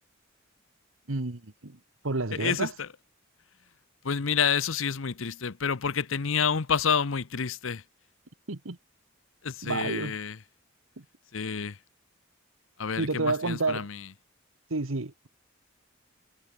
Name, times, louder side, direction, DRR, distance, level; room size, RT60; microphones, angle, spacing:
voice 1, 1.1-1.7 2.0-2.7 8.5-8.8 9.6-10.2 13.0-13.9 14.7-15.3, right 3 dB, 80° right, 1.5 m, -30 dB
voice 2, 2.4-2.9 4.0-7.8 9.4-10.4 11.3-11.7 12.8-14.0, left 6 dB, 70° left, 0.8 m, -29 dB
head